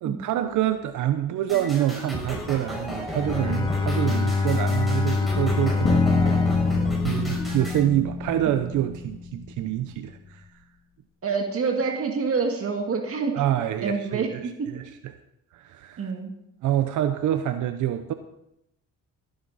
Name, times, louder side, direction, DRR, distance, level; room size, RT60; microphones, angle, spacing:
voice 1, 0.0-6.4 7.0-10.5 13.3-14.8 15.5-16.1 16.6-18.1, right 12 dB, 80° right, 9 dB, 0.8 m, -26 dB
sound 1, 1.5-7.9, equal, ahead, 5.8 m, -34 dB
Bowed string instrument, 3.1-8.1, left 4 dB, 15° left, 1.2 m, -26 dB
sound 2, 5.8-9.9, left 3 dB, 40° left, 2.2 m, -27 dB
voice 2, 11.2-13.4 13.8-14.7 16.0-16.3, right 4 dB, 50° right, 3 dB, 1.9 m, -27 dB
17.5 x 10.5 x 4.1 m, 0.84 s
cardioid pair, 90°, 30 cm